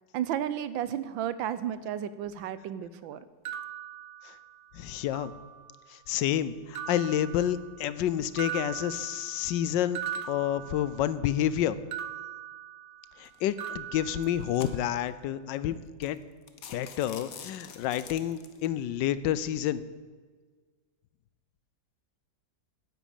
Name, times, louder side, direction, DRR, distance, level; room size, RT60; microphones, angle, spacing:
voice 1, 0.1-3.2, right 10 dB, 85° right, 15 dB, 1.5 m, -33 dB
sound 1, 3.4-4.7 5.1-5.9 6.7-8.0 8.4-11.3 11.9-13.3 13.6-14.9, right 9 dB, 65° right, 1.0 m, -40 dB
voice 2, 4.7-5.3 5.9-10.0 10.3-11.8 13.2-16.2 16.7-19.8, left 11 dB, 75° left, 16 dB, 1.2 m, -29 dB
sound 2, 13.2-13.5 14.1-15.1 15.7-15.8 16.0-16.2 16.5-18.7, left 7 dB, 55° left, 1.3 m, -46 dB
10.0 x 9.3 x 8.9 m, 1.5 s
omnidirectional pair, 2.0 m